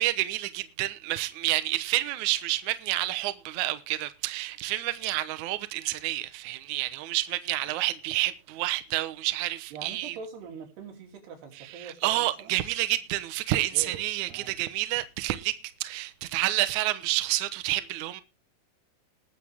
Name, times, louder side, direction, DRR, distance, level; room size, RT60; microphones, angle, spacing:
voice 1, 0.0-10.2 11.8-18.2, right 16 dB, 90° right, 1.6 m, -29 dB
voice 2, 9.7-12.6 13.7-14.0 14.3-14.6, right 6 dB, 70° right, 5.1 m, -43 dB
21.0 x 7.6 x 3.6 m
omnidirectional pair, 4.9 m